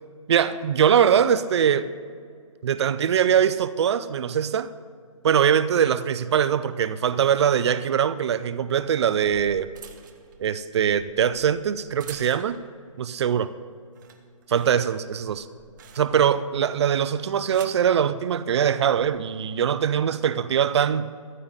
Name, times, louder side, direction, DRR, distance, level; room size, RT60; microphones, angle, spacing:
voice 1, 0.3-1.9 2.6-4.7 5.2-9.7 10.4-12.6 13.0-13.5 14.5-15.5 16.0-21.1, right 8 dB, 55° right, 14 dB, 0.5 m, -22 dB
sound 1, 8.8-12.8 13.2-13.6 13.9-16.4 17.2-17.9 18.8-19.1, right 8 dB, 35° right, 0.9 m, -48 dB
14.0 x 8.8 x 4.0 m, 2.1 s
hypercardioid pair, 155°, 17 cm